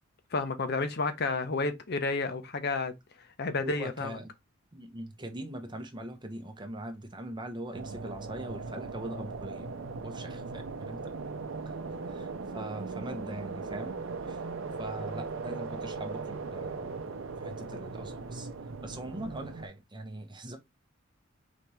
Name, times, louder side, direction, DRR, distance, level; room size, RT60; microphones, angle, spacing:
voice 1, 0.3-2.9 3.4-4.2, left 3 dB, 55° left, 0.7 m, -31 dB
voice 2, 3.6-4.3 4.7-11.1 11.7-11.8 12.1-14.0 14.3-14.4 14.8-18.5 18.8-20.6, right 1 dB, 25° right, 0.9 m, -41 dB
sound 1, 7.7-19.7, right 4 dB, 85° right, 0.6 m, -39 dB
4.1 x 3.4 x 3.1 m
head